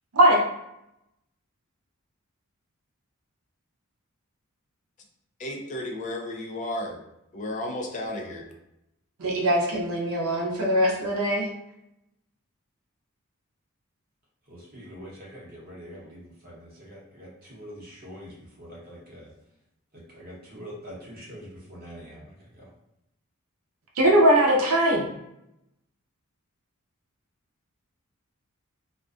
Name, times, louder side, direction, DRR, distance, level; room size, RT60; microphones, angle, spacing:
voice 1, 5.4-7.0 7.3-8.5, left 1 dB, 35° left, 1 dB, 0.3 m, -33 dB
voice 2, 9.2-11.5 24.0-25.1, right 1 dB, 75° right, -1 dB, 0.5 m, -21 dB
voice 3, 14.5-19.3 20.1-22.7, equal, 45° right, -5 dB, 0.8 m, -44 dB
2.4 x 2.2 x 2.4 m, 0.84 s
head